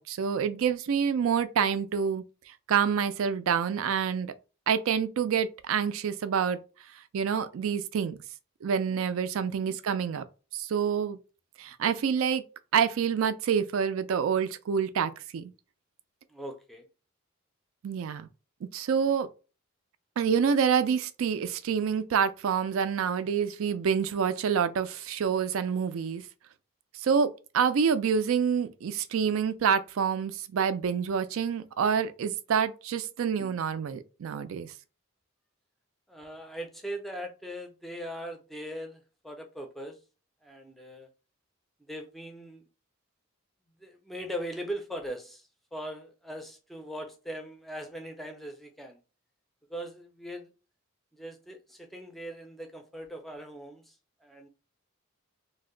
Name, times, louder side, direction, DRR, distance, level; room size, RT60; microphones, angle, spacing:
voice 1, 0.0-2.2 2.7-4.3 4.7-6.6 7.1-8.2 8.6-10.2 10.5-11.2 11.6-12.4 12.7-15.5 17.8-18.3 18.7-19.3 20.2-26.2 27.0-34.7, right 7 dB, 75° right, 0.3 m, -27 dB
voice 2, 16.3-16.8 36.1-40.0 40.4-41.1 41.9-42.6 43.8-49.0 49.7-50.5 51.1-54.5, equal, ahead, 0.4 m, -40 dB
2.6 x 2.1 x 3.7 m
head